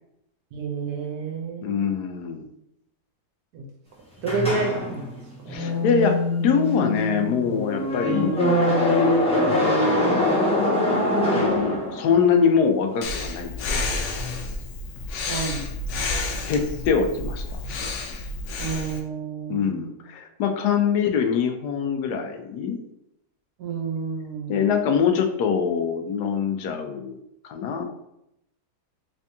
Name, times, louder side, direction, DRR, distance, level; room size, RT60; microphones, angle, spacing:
voice 1, 0.5-1.8 3.5-3.6 4.2-5.1 5.4-5.8 15.3-15.7 18.6-20.0 23.6-24.7, right 4 dB, 75° right, 1 dB, 1.2 m, -30 dB
voice 2, 1.6-2.5 5.5-8.8 9.5-13.9 16.1-17.4 19.5-22.8 24.5-27.9, left 6 dB, 85° left, 5 dB, 1.1 m, -24 dB
sound 1, 4.2-12.3, left 1 dB, 5° left, 0.5 m, -23 dB
Breathing, 13.0-19.0, left 3 dB, 65° left, 0.7 m, -30 dB
3.4 x 3.4 x 2.7 m, 0.81 s
omnidirectional pair, 1.7 m